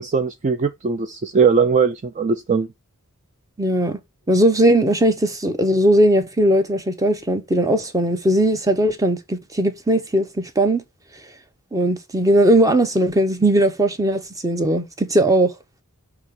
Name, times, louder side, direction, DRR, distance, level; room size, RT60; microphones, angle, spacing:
voice 1, 0.0-2.7, right 5 dB, 35° right, 0.4 m, -20 dB
voice 2, 3.6-4.0 4.3-10.8 11.7-15.5, right 1 dB, 15° right, 0.8 m, -18 dB
6.3 x 2.9 x 5.2 m
head